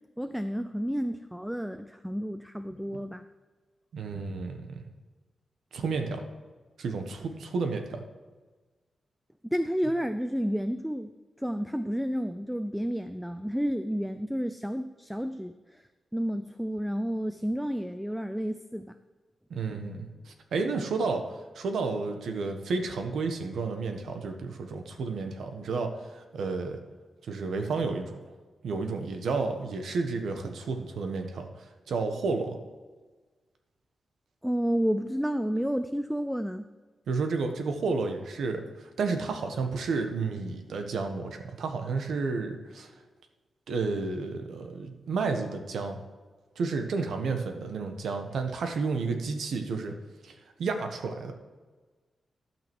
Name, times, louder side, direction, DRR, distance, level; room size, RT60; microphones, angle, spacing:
voice 1, 0.2-3.3 9.4-11.1 11.4-15.9 16.1-18.9 34.4-36.7, equal, ahead, 10 dB, 0.4 m, -31 dB
voice 2, 3.9-4.8 5.7-6.2 6.8-8.0 19.5-21.2 21.5-26.8 27.2-28.2 28.6-32.6 37.1-42.9 43.7-46.0 46.6-49.9 50.2-50.3 50.6-51.3, right 4 dB, 80° right, 5 dB, 1.3 m, -31 dB
12.5 x 5.9 x 6.1 m, 1.3 s
wide cardioid pair, 140°, 0 cm